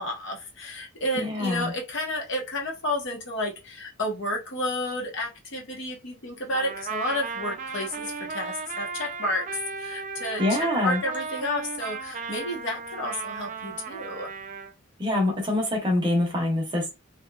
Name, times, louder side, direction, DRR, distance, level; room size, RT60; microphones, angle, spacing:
voice 1, 0.0-9.5 9.8-14.3, left 1 dB, 55° left, 0.9 m, -31 dB
voice 2, 1.1-1.7 10.4-11.0 15.0-16.9, left 1 dB, 20° right, 0.8 m, -25 dB
Trumpet, 6.5-14.7, right 5 dB, 35° right, 0.3 m, -35 dB
2.9 x 2.3 x 2.2 m
head